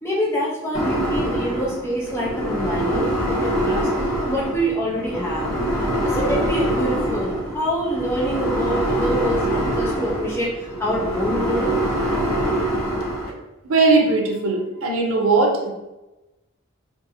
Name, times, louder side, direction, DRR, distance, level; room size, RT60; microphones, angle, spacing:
voice 1, 0.0-3.9 4.3-5.5 6.0-11.7, equal, 10° left, -4 dB, 0.6 m, -26 dB
sound 1, 0.7-13.3, equal, 90° left, 0.6 m, -24 dB
voice 2, 13.6-15.7, right 3 dB, 90° right, 1 dB, 0.6 m, -19 dB
2.5 x 2.5 x 2.7 m, 1.0 s
head